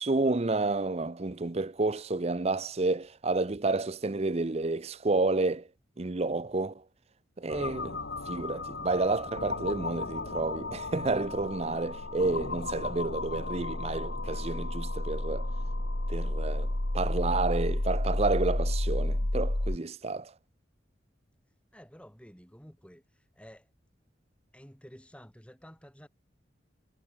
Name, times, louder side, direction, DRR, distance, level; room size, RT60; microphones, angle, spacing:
voice 1, 0.0-5.7 6.0-6.8 7.4-15.5 16.1-20.3, right 3 dB, 35° right, 0.7 m, -30 dB
sound 1, 7.5-19.8, left 1 dB, 75° left, 2.3 m, -32 dB
voice 2, 21.7-23.7 24.5-26.1, equal, 5° left, 7.3 m, -52 dB
head